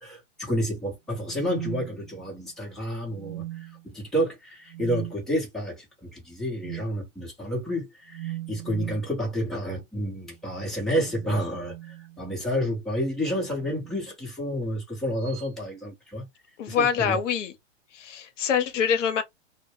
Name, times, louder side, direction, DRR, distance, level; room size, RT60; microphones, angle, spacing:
voice 1, 0.0-16.2 16.7-17.2, equal, ahead, 0.8 m, -30 dB
sound 1, 1.2-2.5 3.1-3.9 4.7-5.2 6.6-6.9 8.1-9.1 10.6-12.5 13.5-14.0 15.2-15.5, right 16 dB, 70° right, 0.6 m, -39 dB
voice 2, 16.6-17.5 17.9-19.2, left 7 dB, 70° left, 0.7 m, -25 dB
2.1 x 2.1 x 3.2 m
hypercardioid pair, 130°, 38 cm